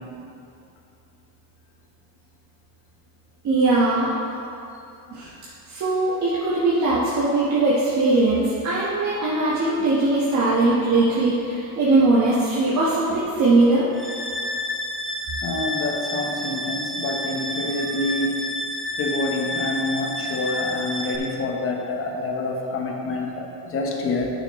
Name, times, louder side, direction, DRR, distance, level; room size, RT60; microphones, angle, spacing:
voice 1, 3.4-4.1 5.1-5.3 5.7-13.9, right 2 dB, 45° right, -9 dB, 1.6 m, -20 dB
sound 1, 13.9-21.2, left 1 dB, ahead, 0.8 m, -30 dB
voice 2, 15.4-18.4 19.0-24.3, left 2 dB, 35° left, 0 dB, 1.2 m, -27 dB
10.5 x 6.5 x 3.2 m, 2.6 s
cardioid pair, 145°, 38 cm